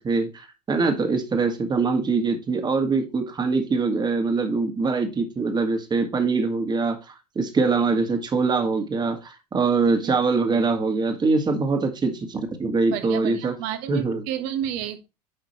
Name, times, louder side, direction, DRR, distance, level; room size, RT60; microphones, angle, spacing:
voice 1, 0.0-13.5 13.9-14.2, right 4 dB, 20° right, 2.0 m, -23 dB
voice 2, 12.9-15.1, right 11 dB, 50° right, 1.6 m, -31 dB
10.5 x 5.9 x 3.1 m
figure-of-eight pair, 75°, 20 cm